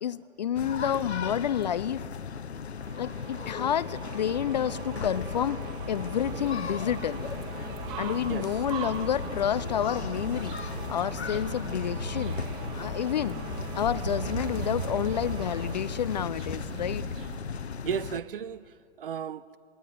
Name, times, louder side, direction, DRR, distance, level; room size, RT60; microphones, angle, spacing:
voice 1, 0.0-2.1 3.0-5.6 5.9-7.3 8.0-10.6 10.9-12.4 12.7-13.4 13.7-17.1, left 9 dB, 40° left, 0.5 m, -29 dB
sound 1, 0.5-18.2, left 6 dB, 65° left, 0.9 m, -36 dB
sound 2, 2.8-17.4, right 8 dB, 10° right, 0.5 m, -44 dB
sound 3, 6.2-17.4, right 6 dB, 30° right, 2.4 m, -40 dB
voice 2, 17.8-19.6, right 8 dB, 50° right, 0.7 m, -34 dB
19.5 x 19.0 x 9.9 m
figure-of-eight pair, 120°, 35 cm